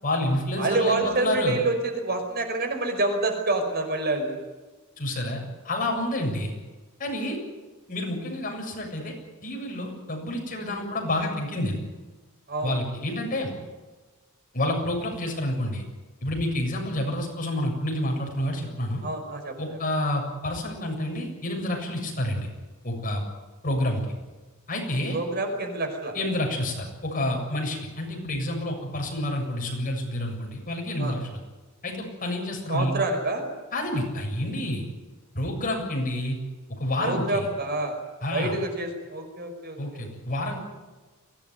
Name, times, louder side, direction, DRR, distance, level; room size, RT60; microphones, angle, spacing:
voice 1, 0.0-1.6 5.0-6.5 7.0-7.4 7.9-9.1 9.4-11.8 12.6-13.5 14.5-15.8 16.2-19.0 19.6-22.5 22.8-23.2 23.6-24.2 24.7-25.2 26.1-31.4 31.8-32.9 33.7-34.8 35.3-36.4 36.8-37.5 38.2-38.5 39.8-40.6, left 1 dB, 40° left, 1 dB, 7.4 m, -29 dB
voice 2, 0.6-4.4 12.5-12.7 19.0-19.6 25.1-26.1 31.0-31.2 32.7-33.5 37.0-38.0 38.3-40.0, right 2 dB, 50° right, 5 dB, 5.3 m, -27 dB
23.5 x 18.0 x 9.6 m, 1.3 s
head